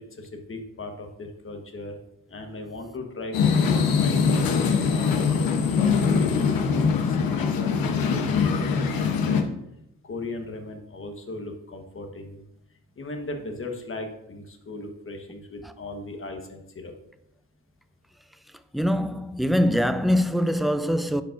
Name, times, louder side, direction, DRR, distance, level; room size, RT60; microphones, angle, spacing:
voice 1, 0.2-2.0 2.3-5.5 6.1-9.4 10.0-12.4 13.0-16.9, left 2 dB, 40° left, 1.3 m, -38 dB
sound 1, 3.3-9.4, left 5 dB, 85° left, 0.9 m, -22 dB
voice 2, 18.7-21.2, equal, ahead, 0.3 m, -23 dB
11.0 x 5.3 x 2.6 m
cardioid pair, 100°, 34 cm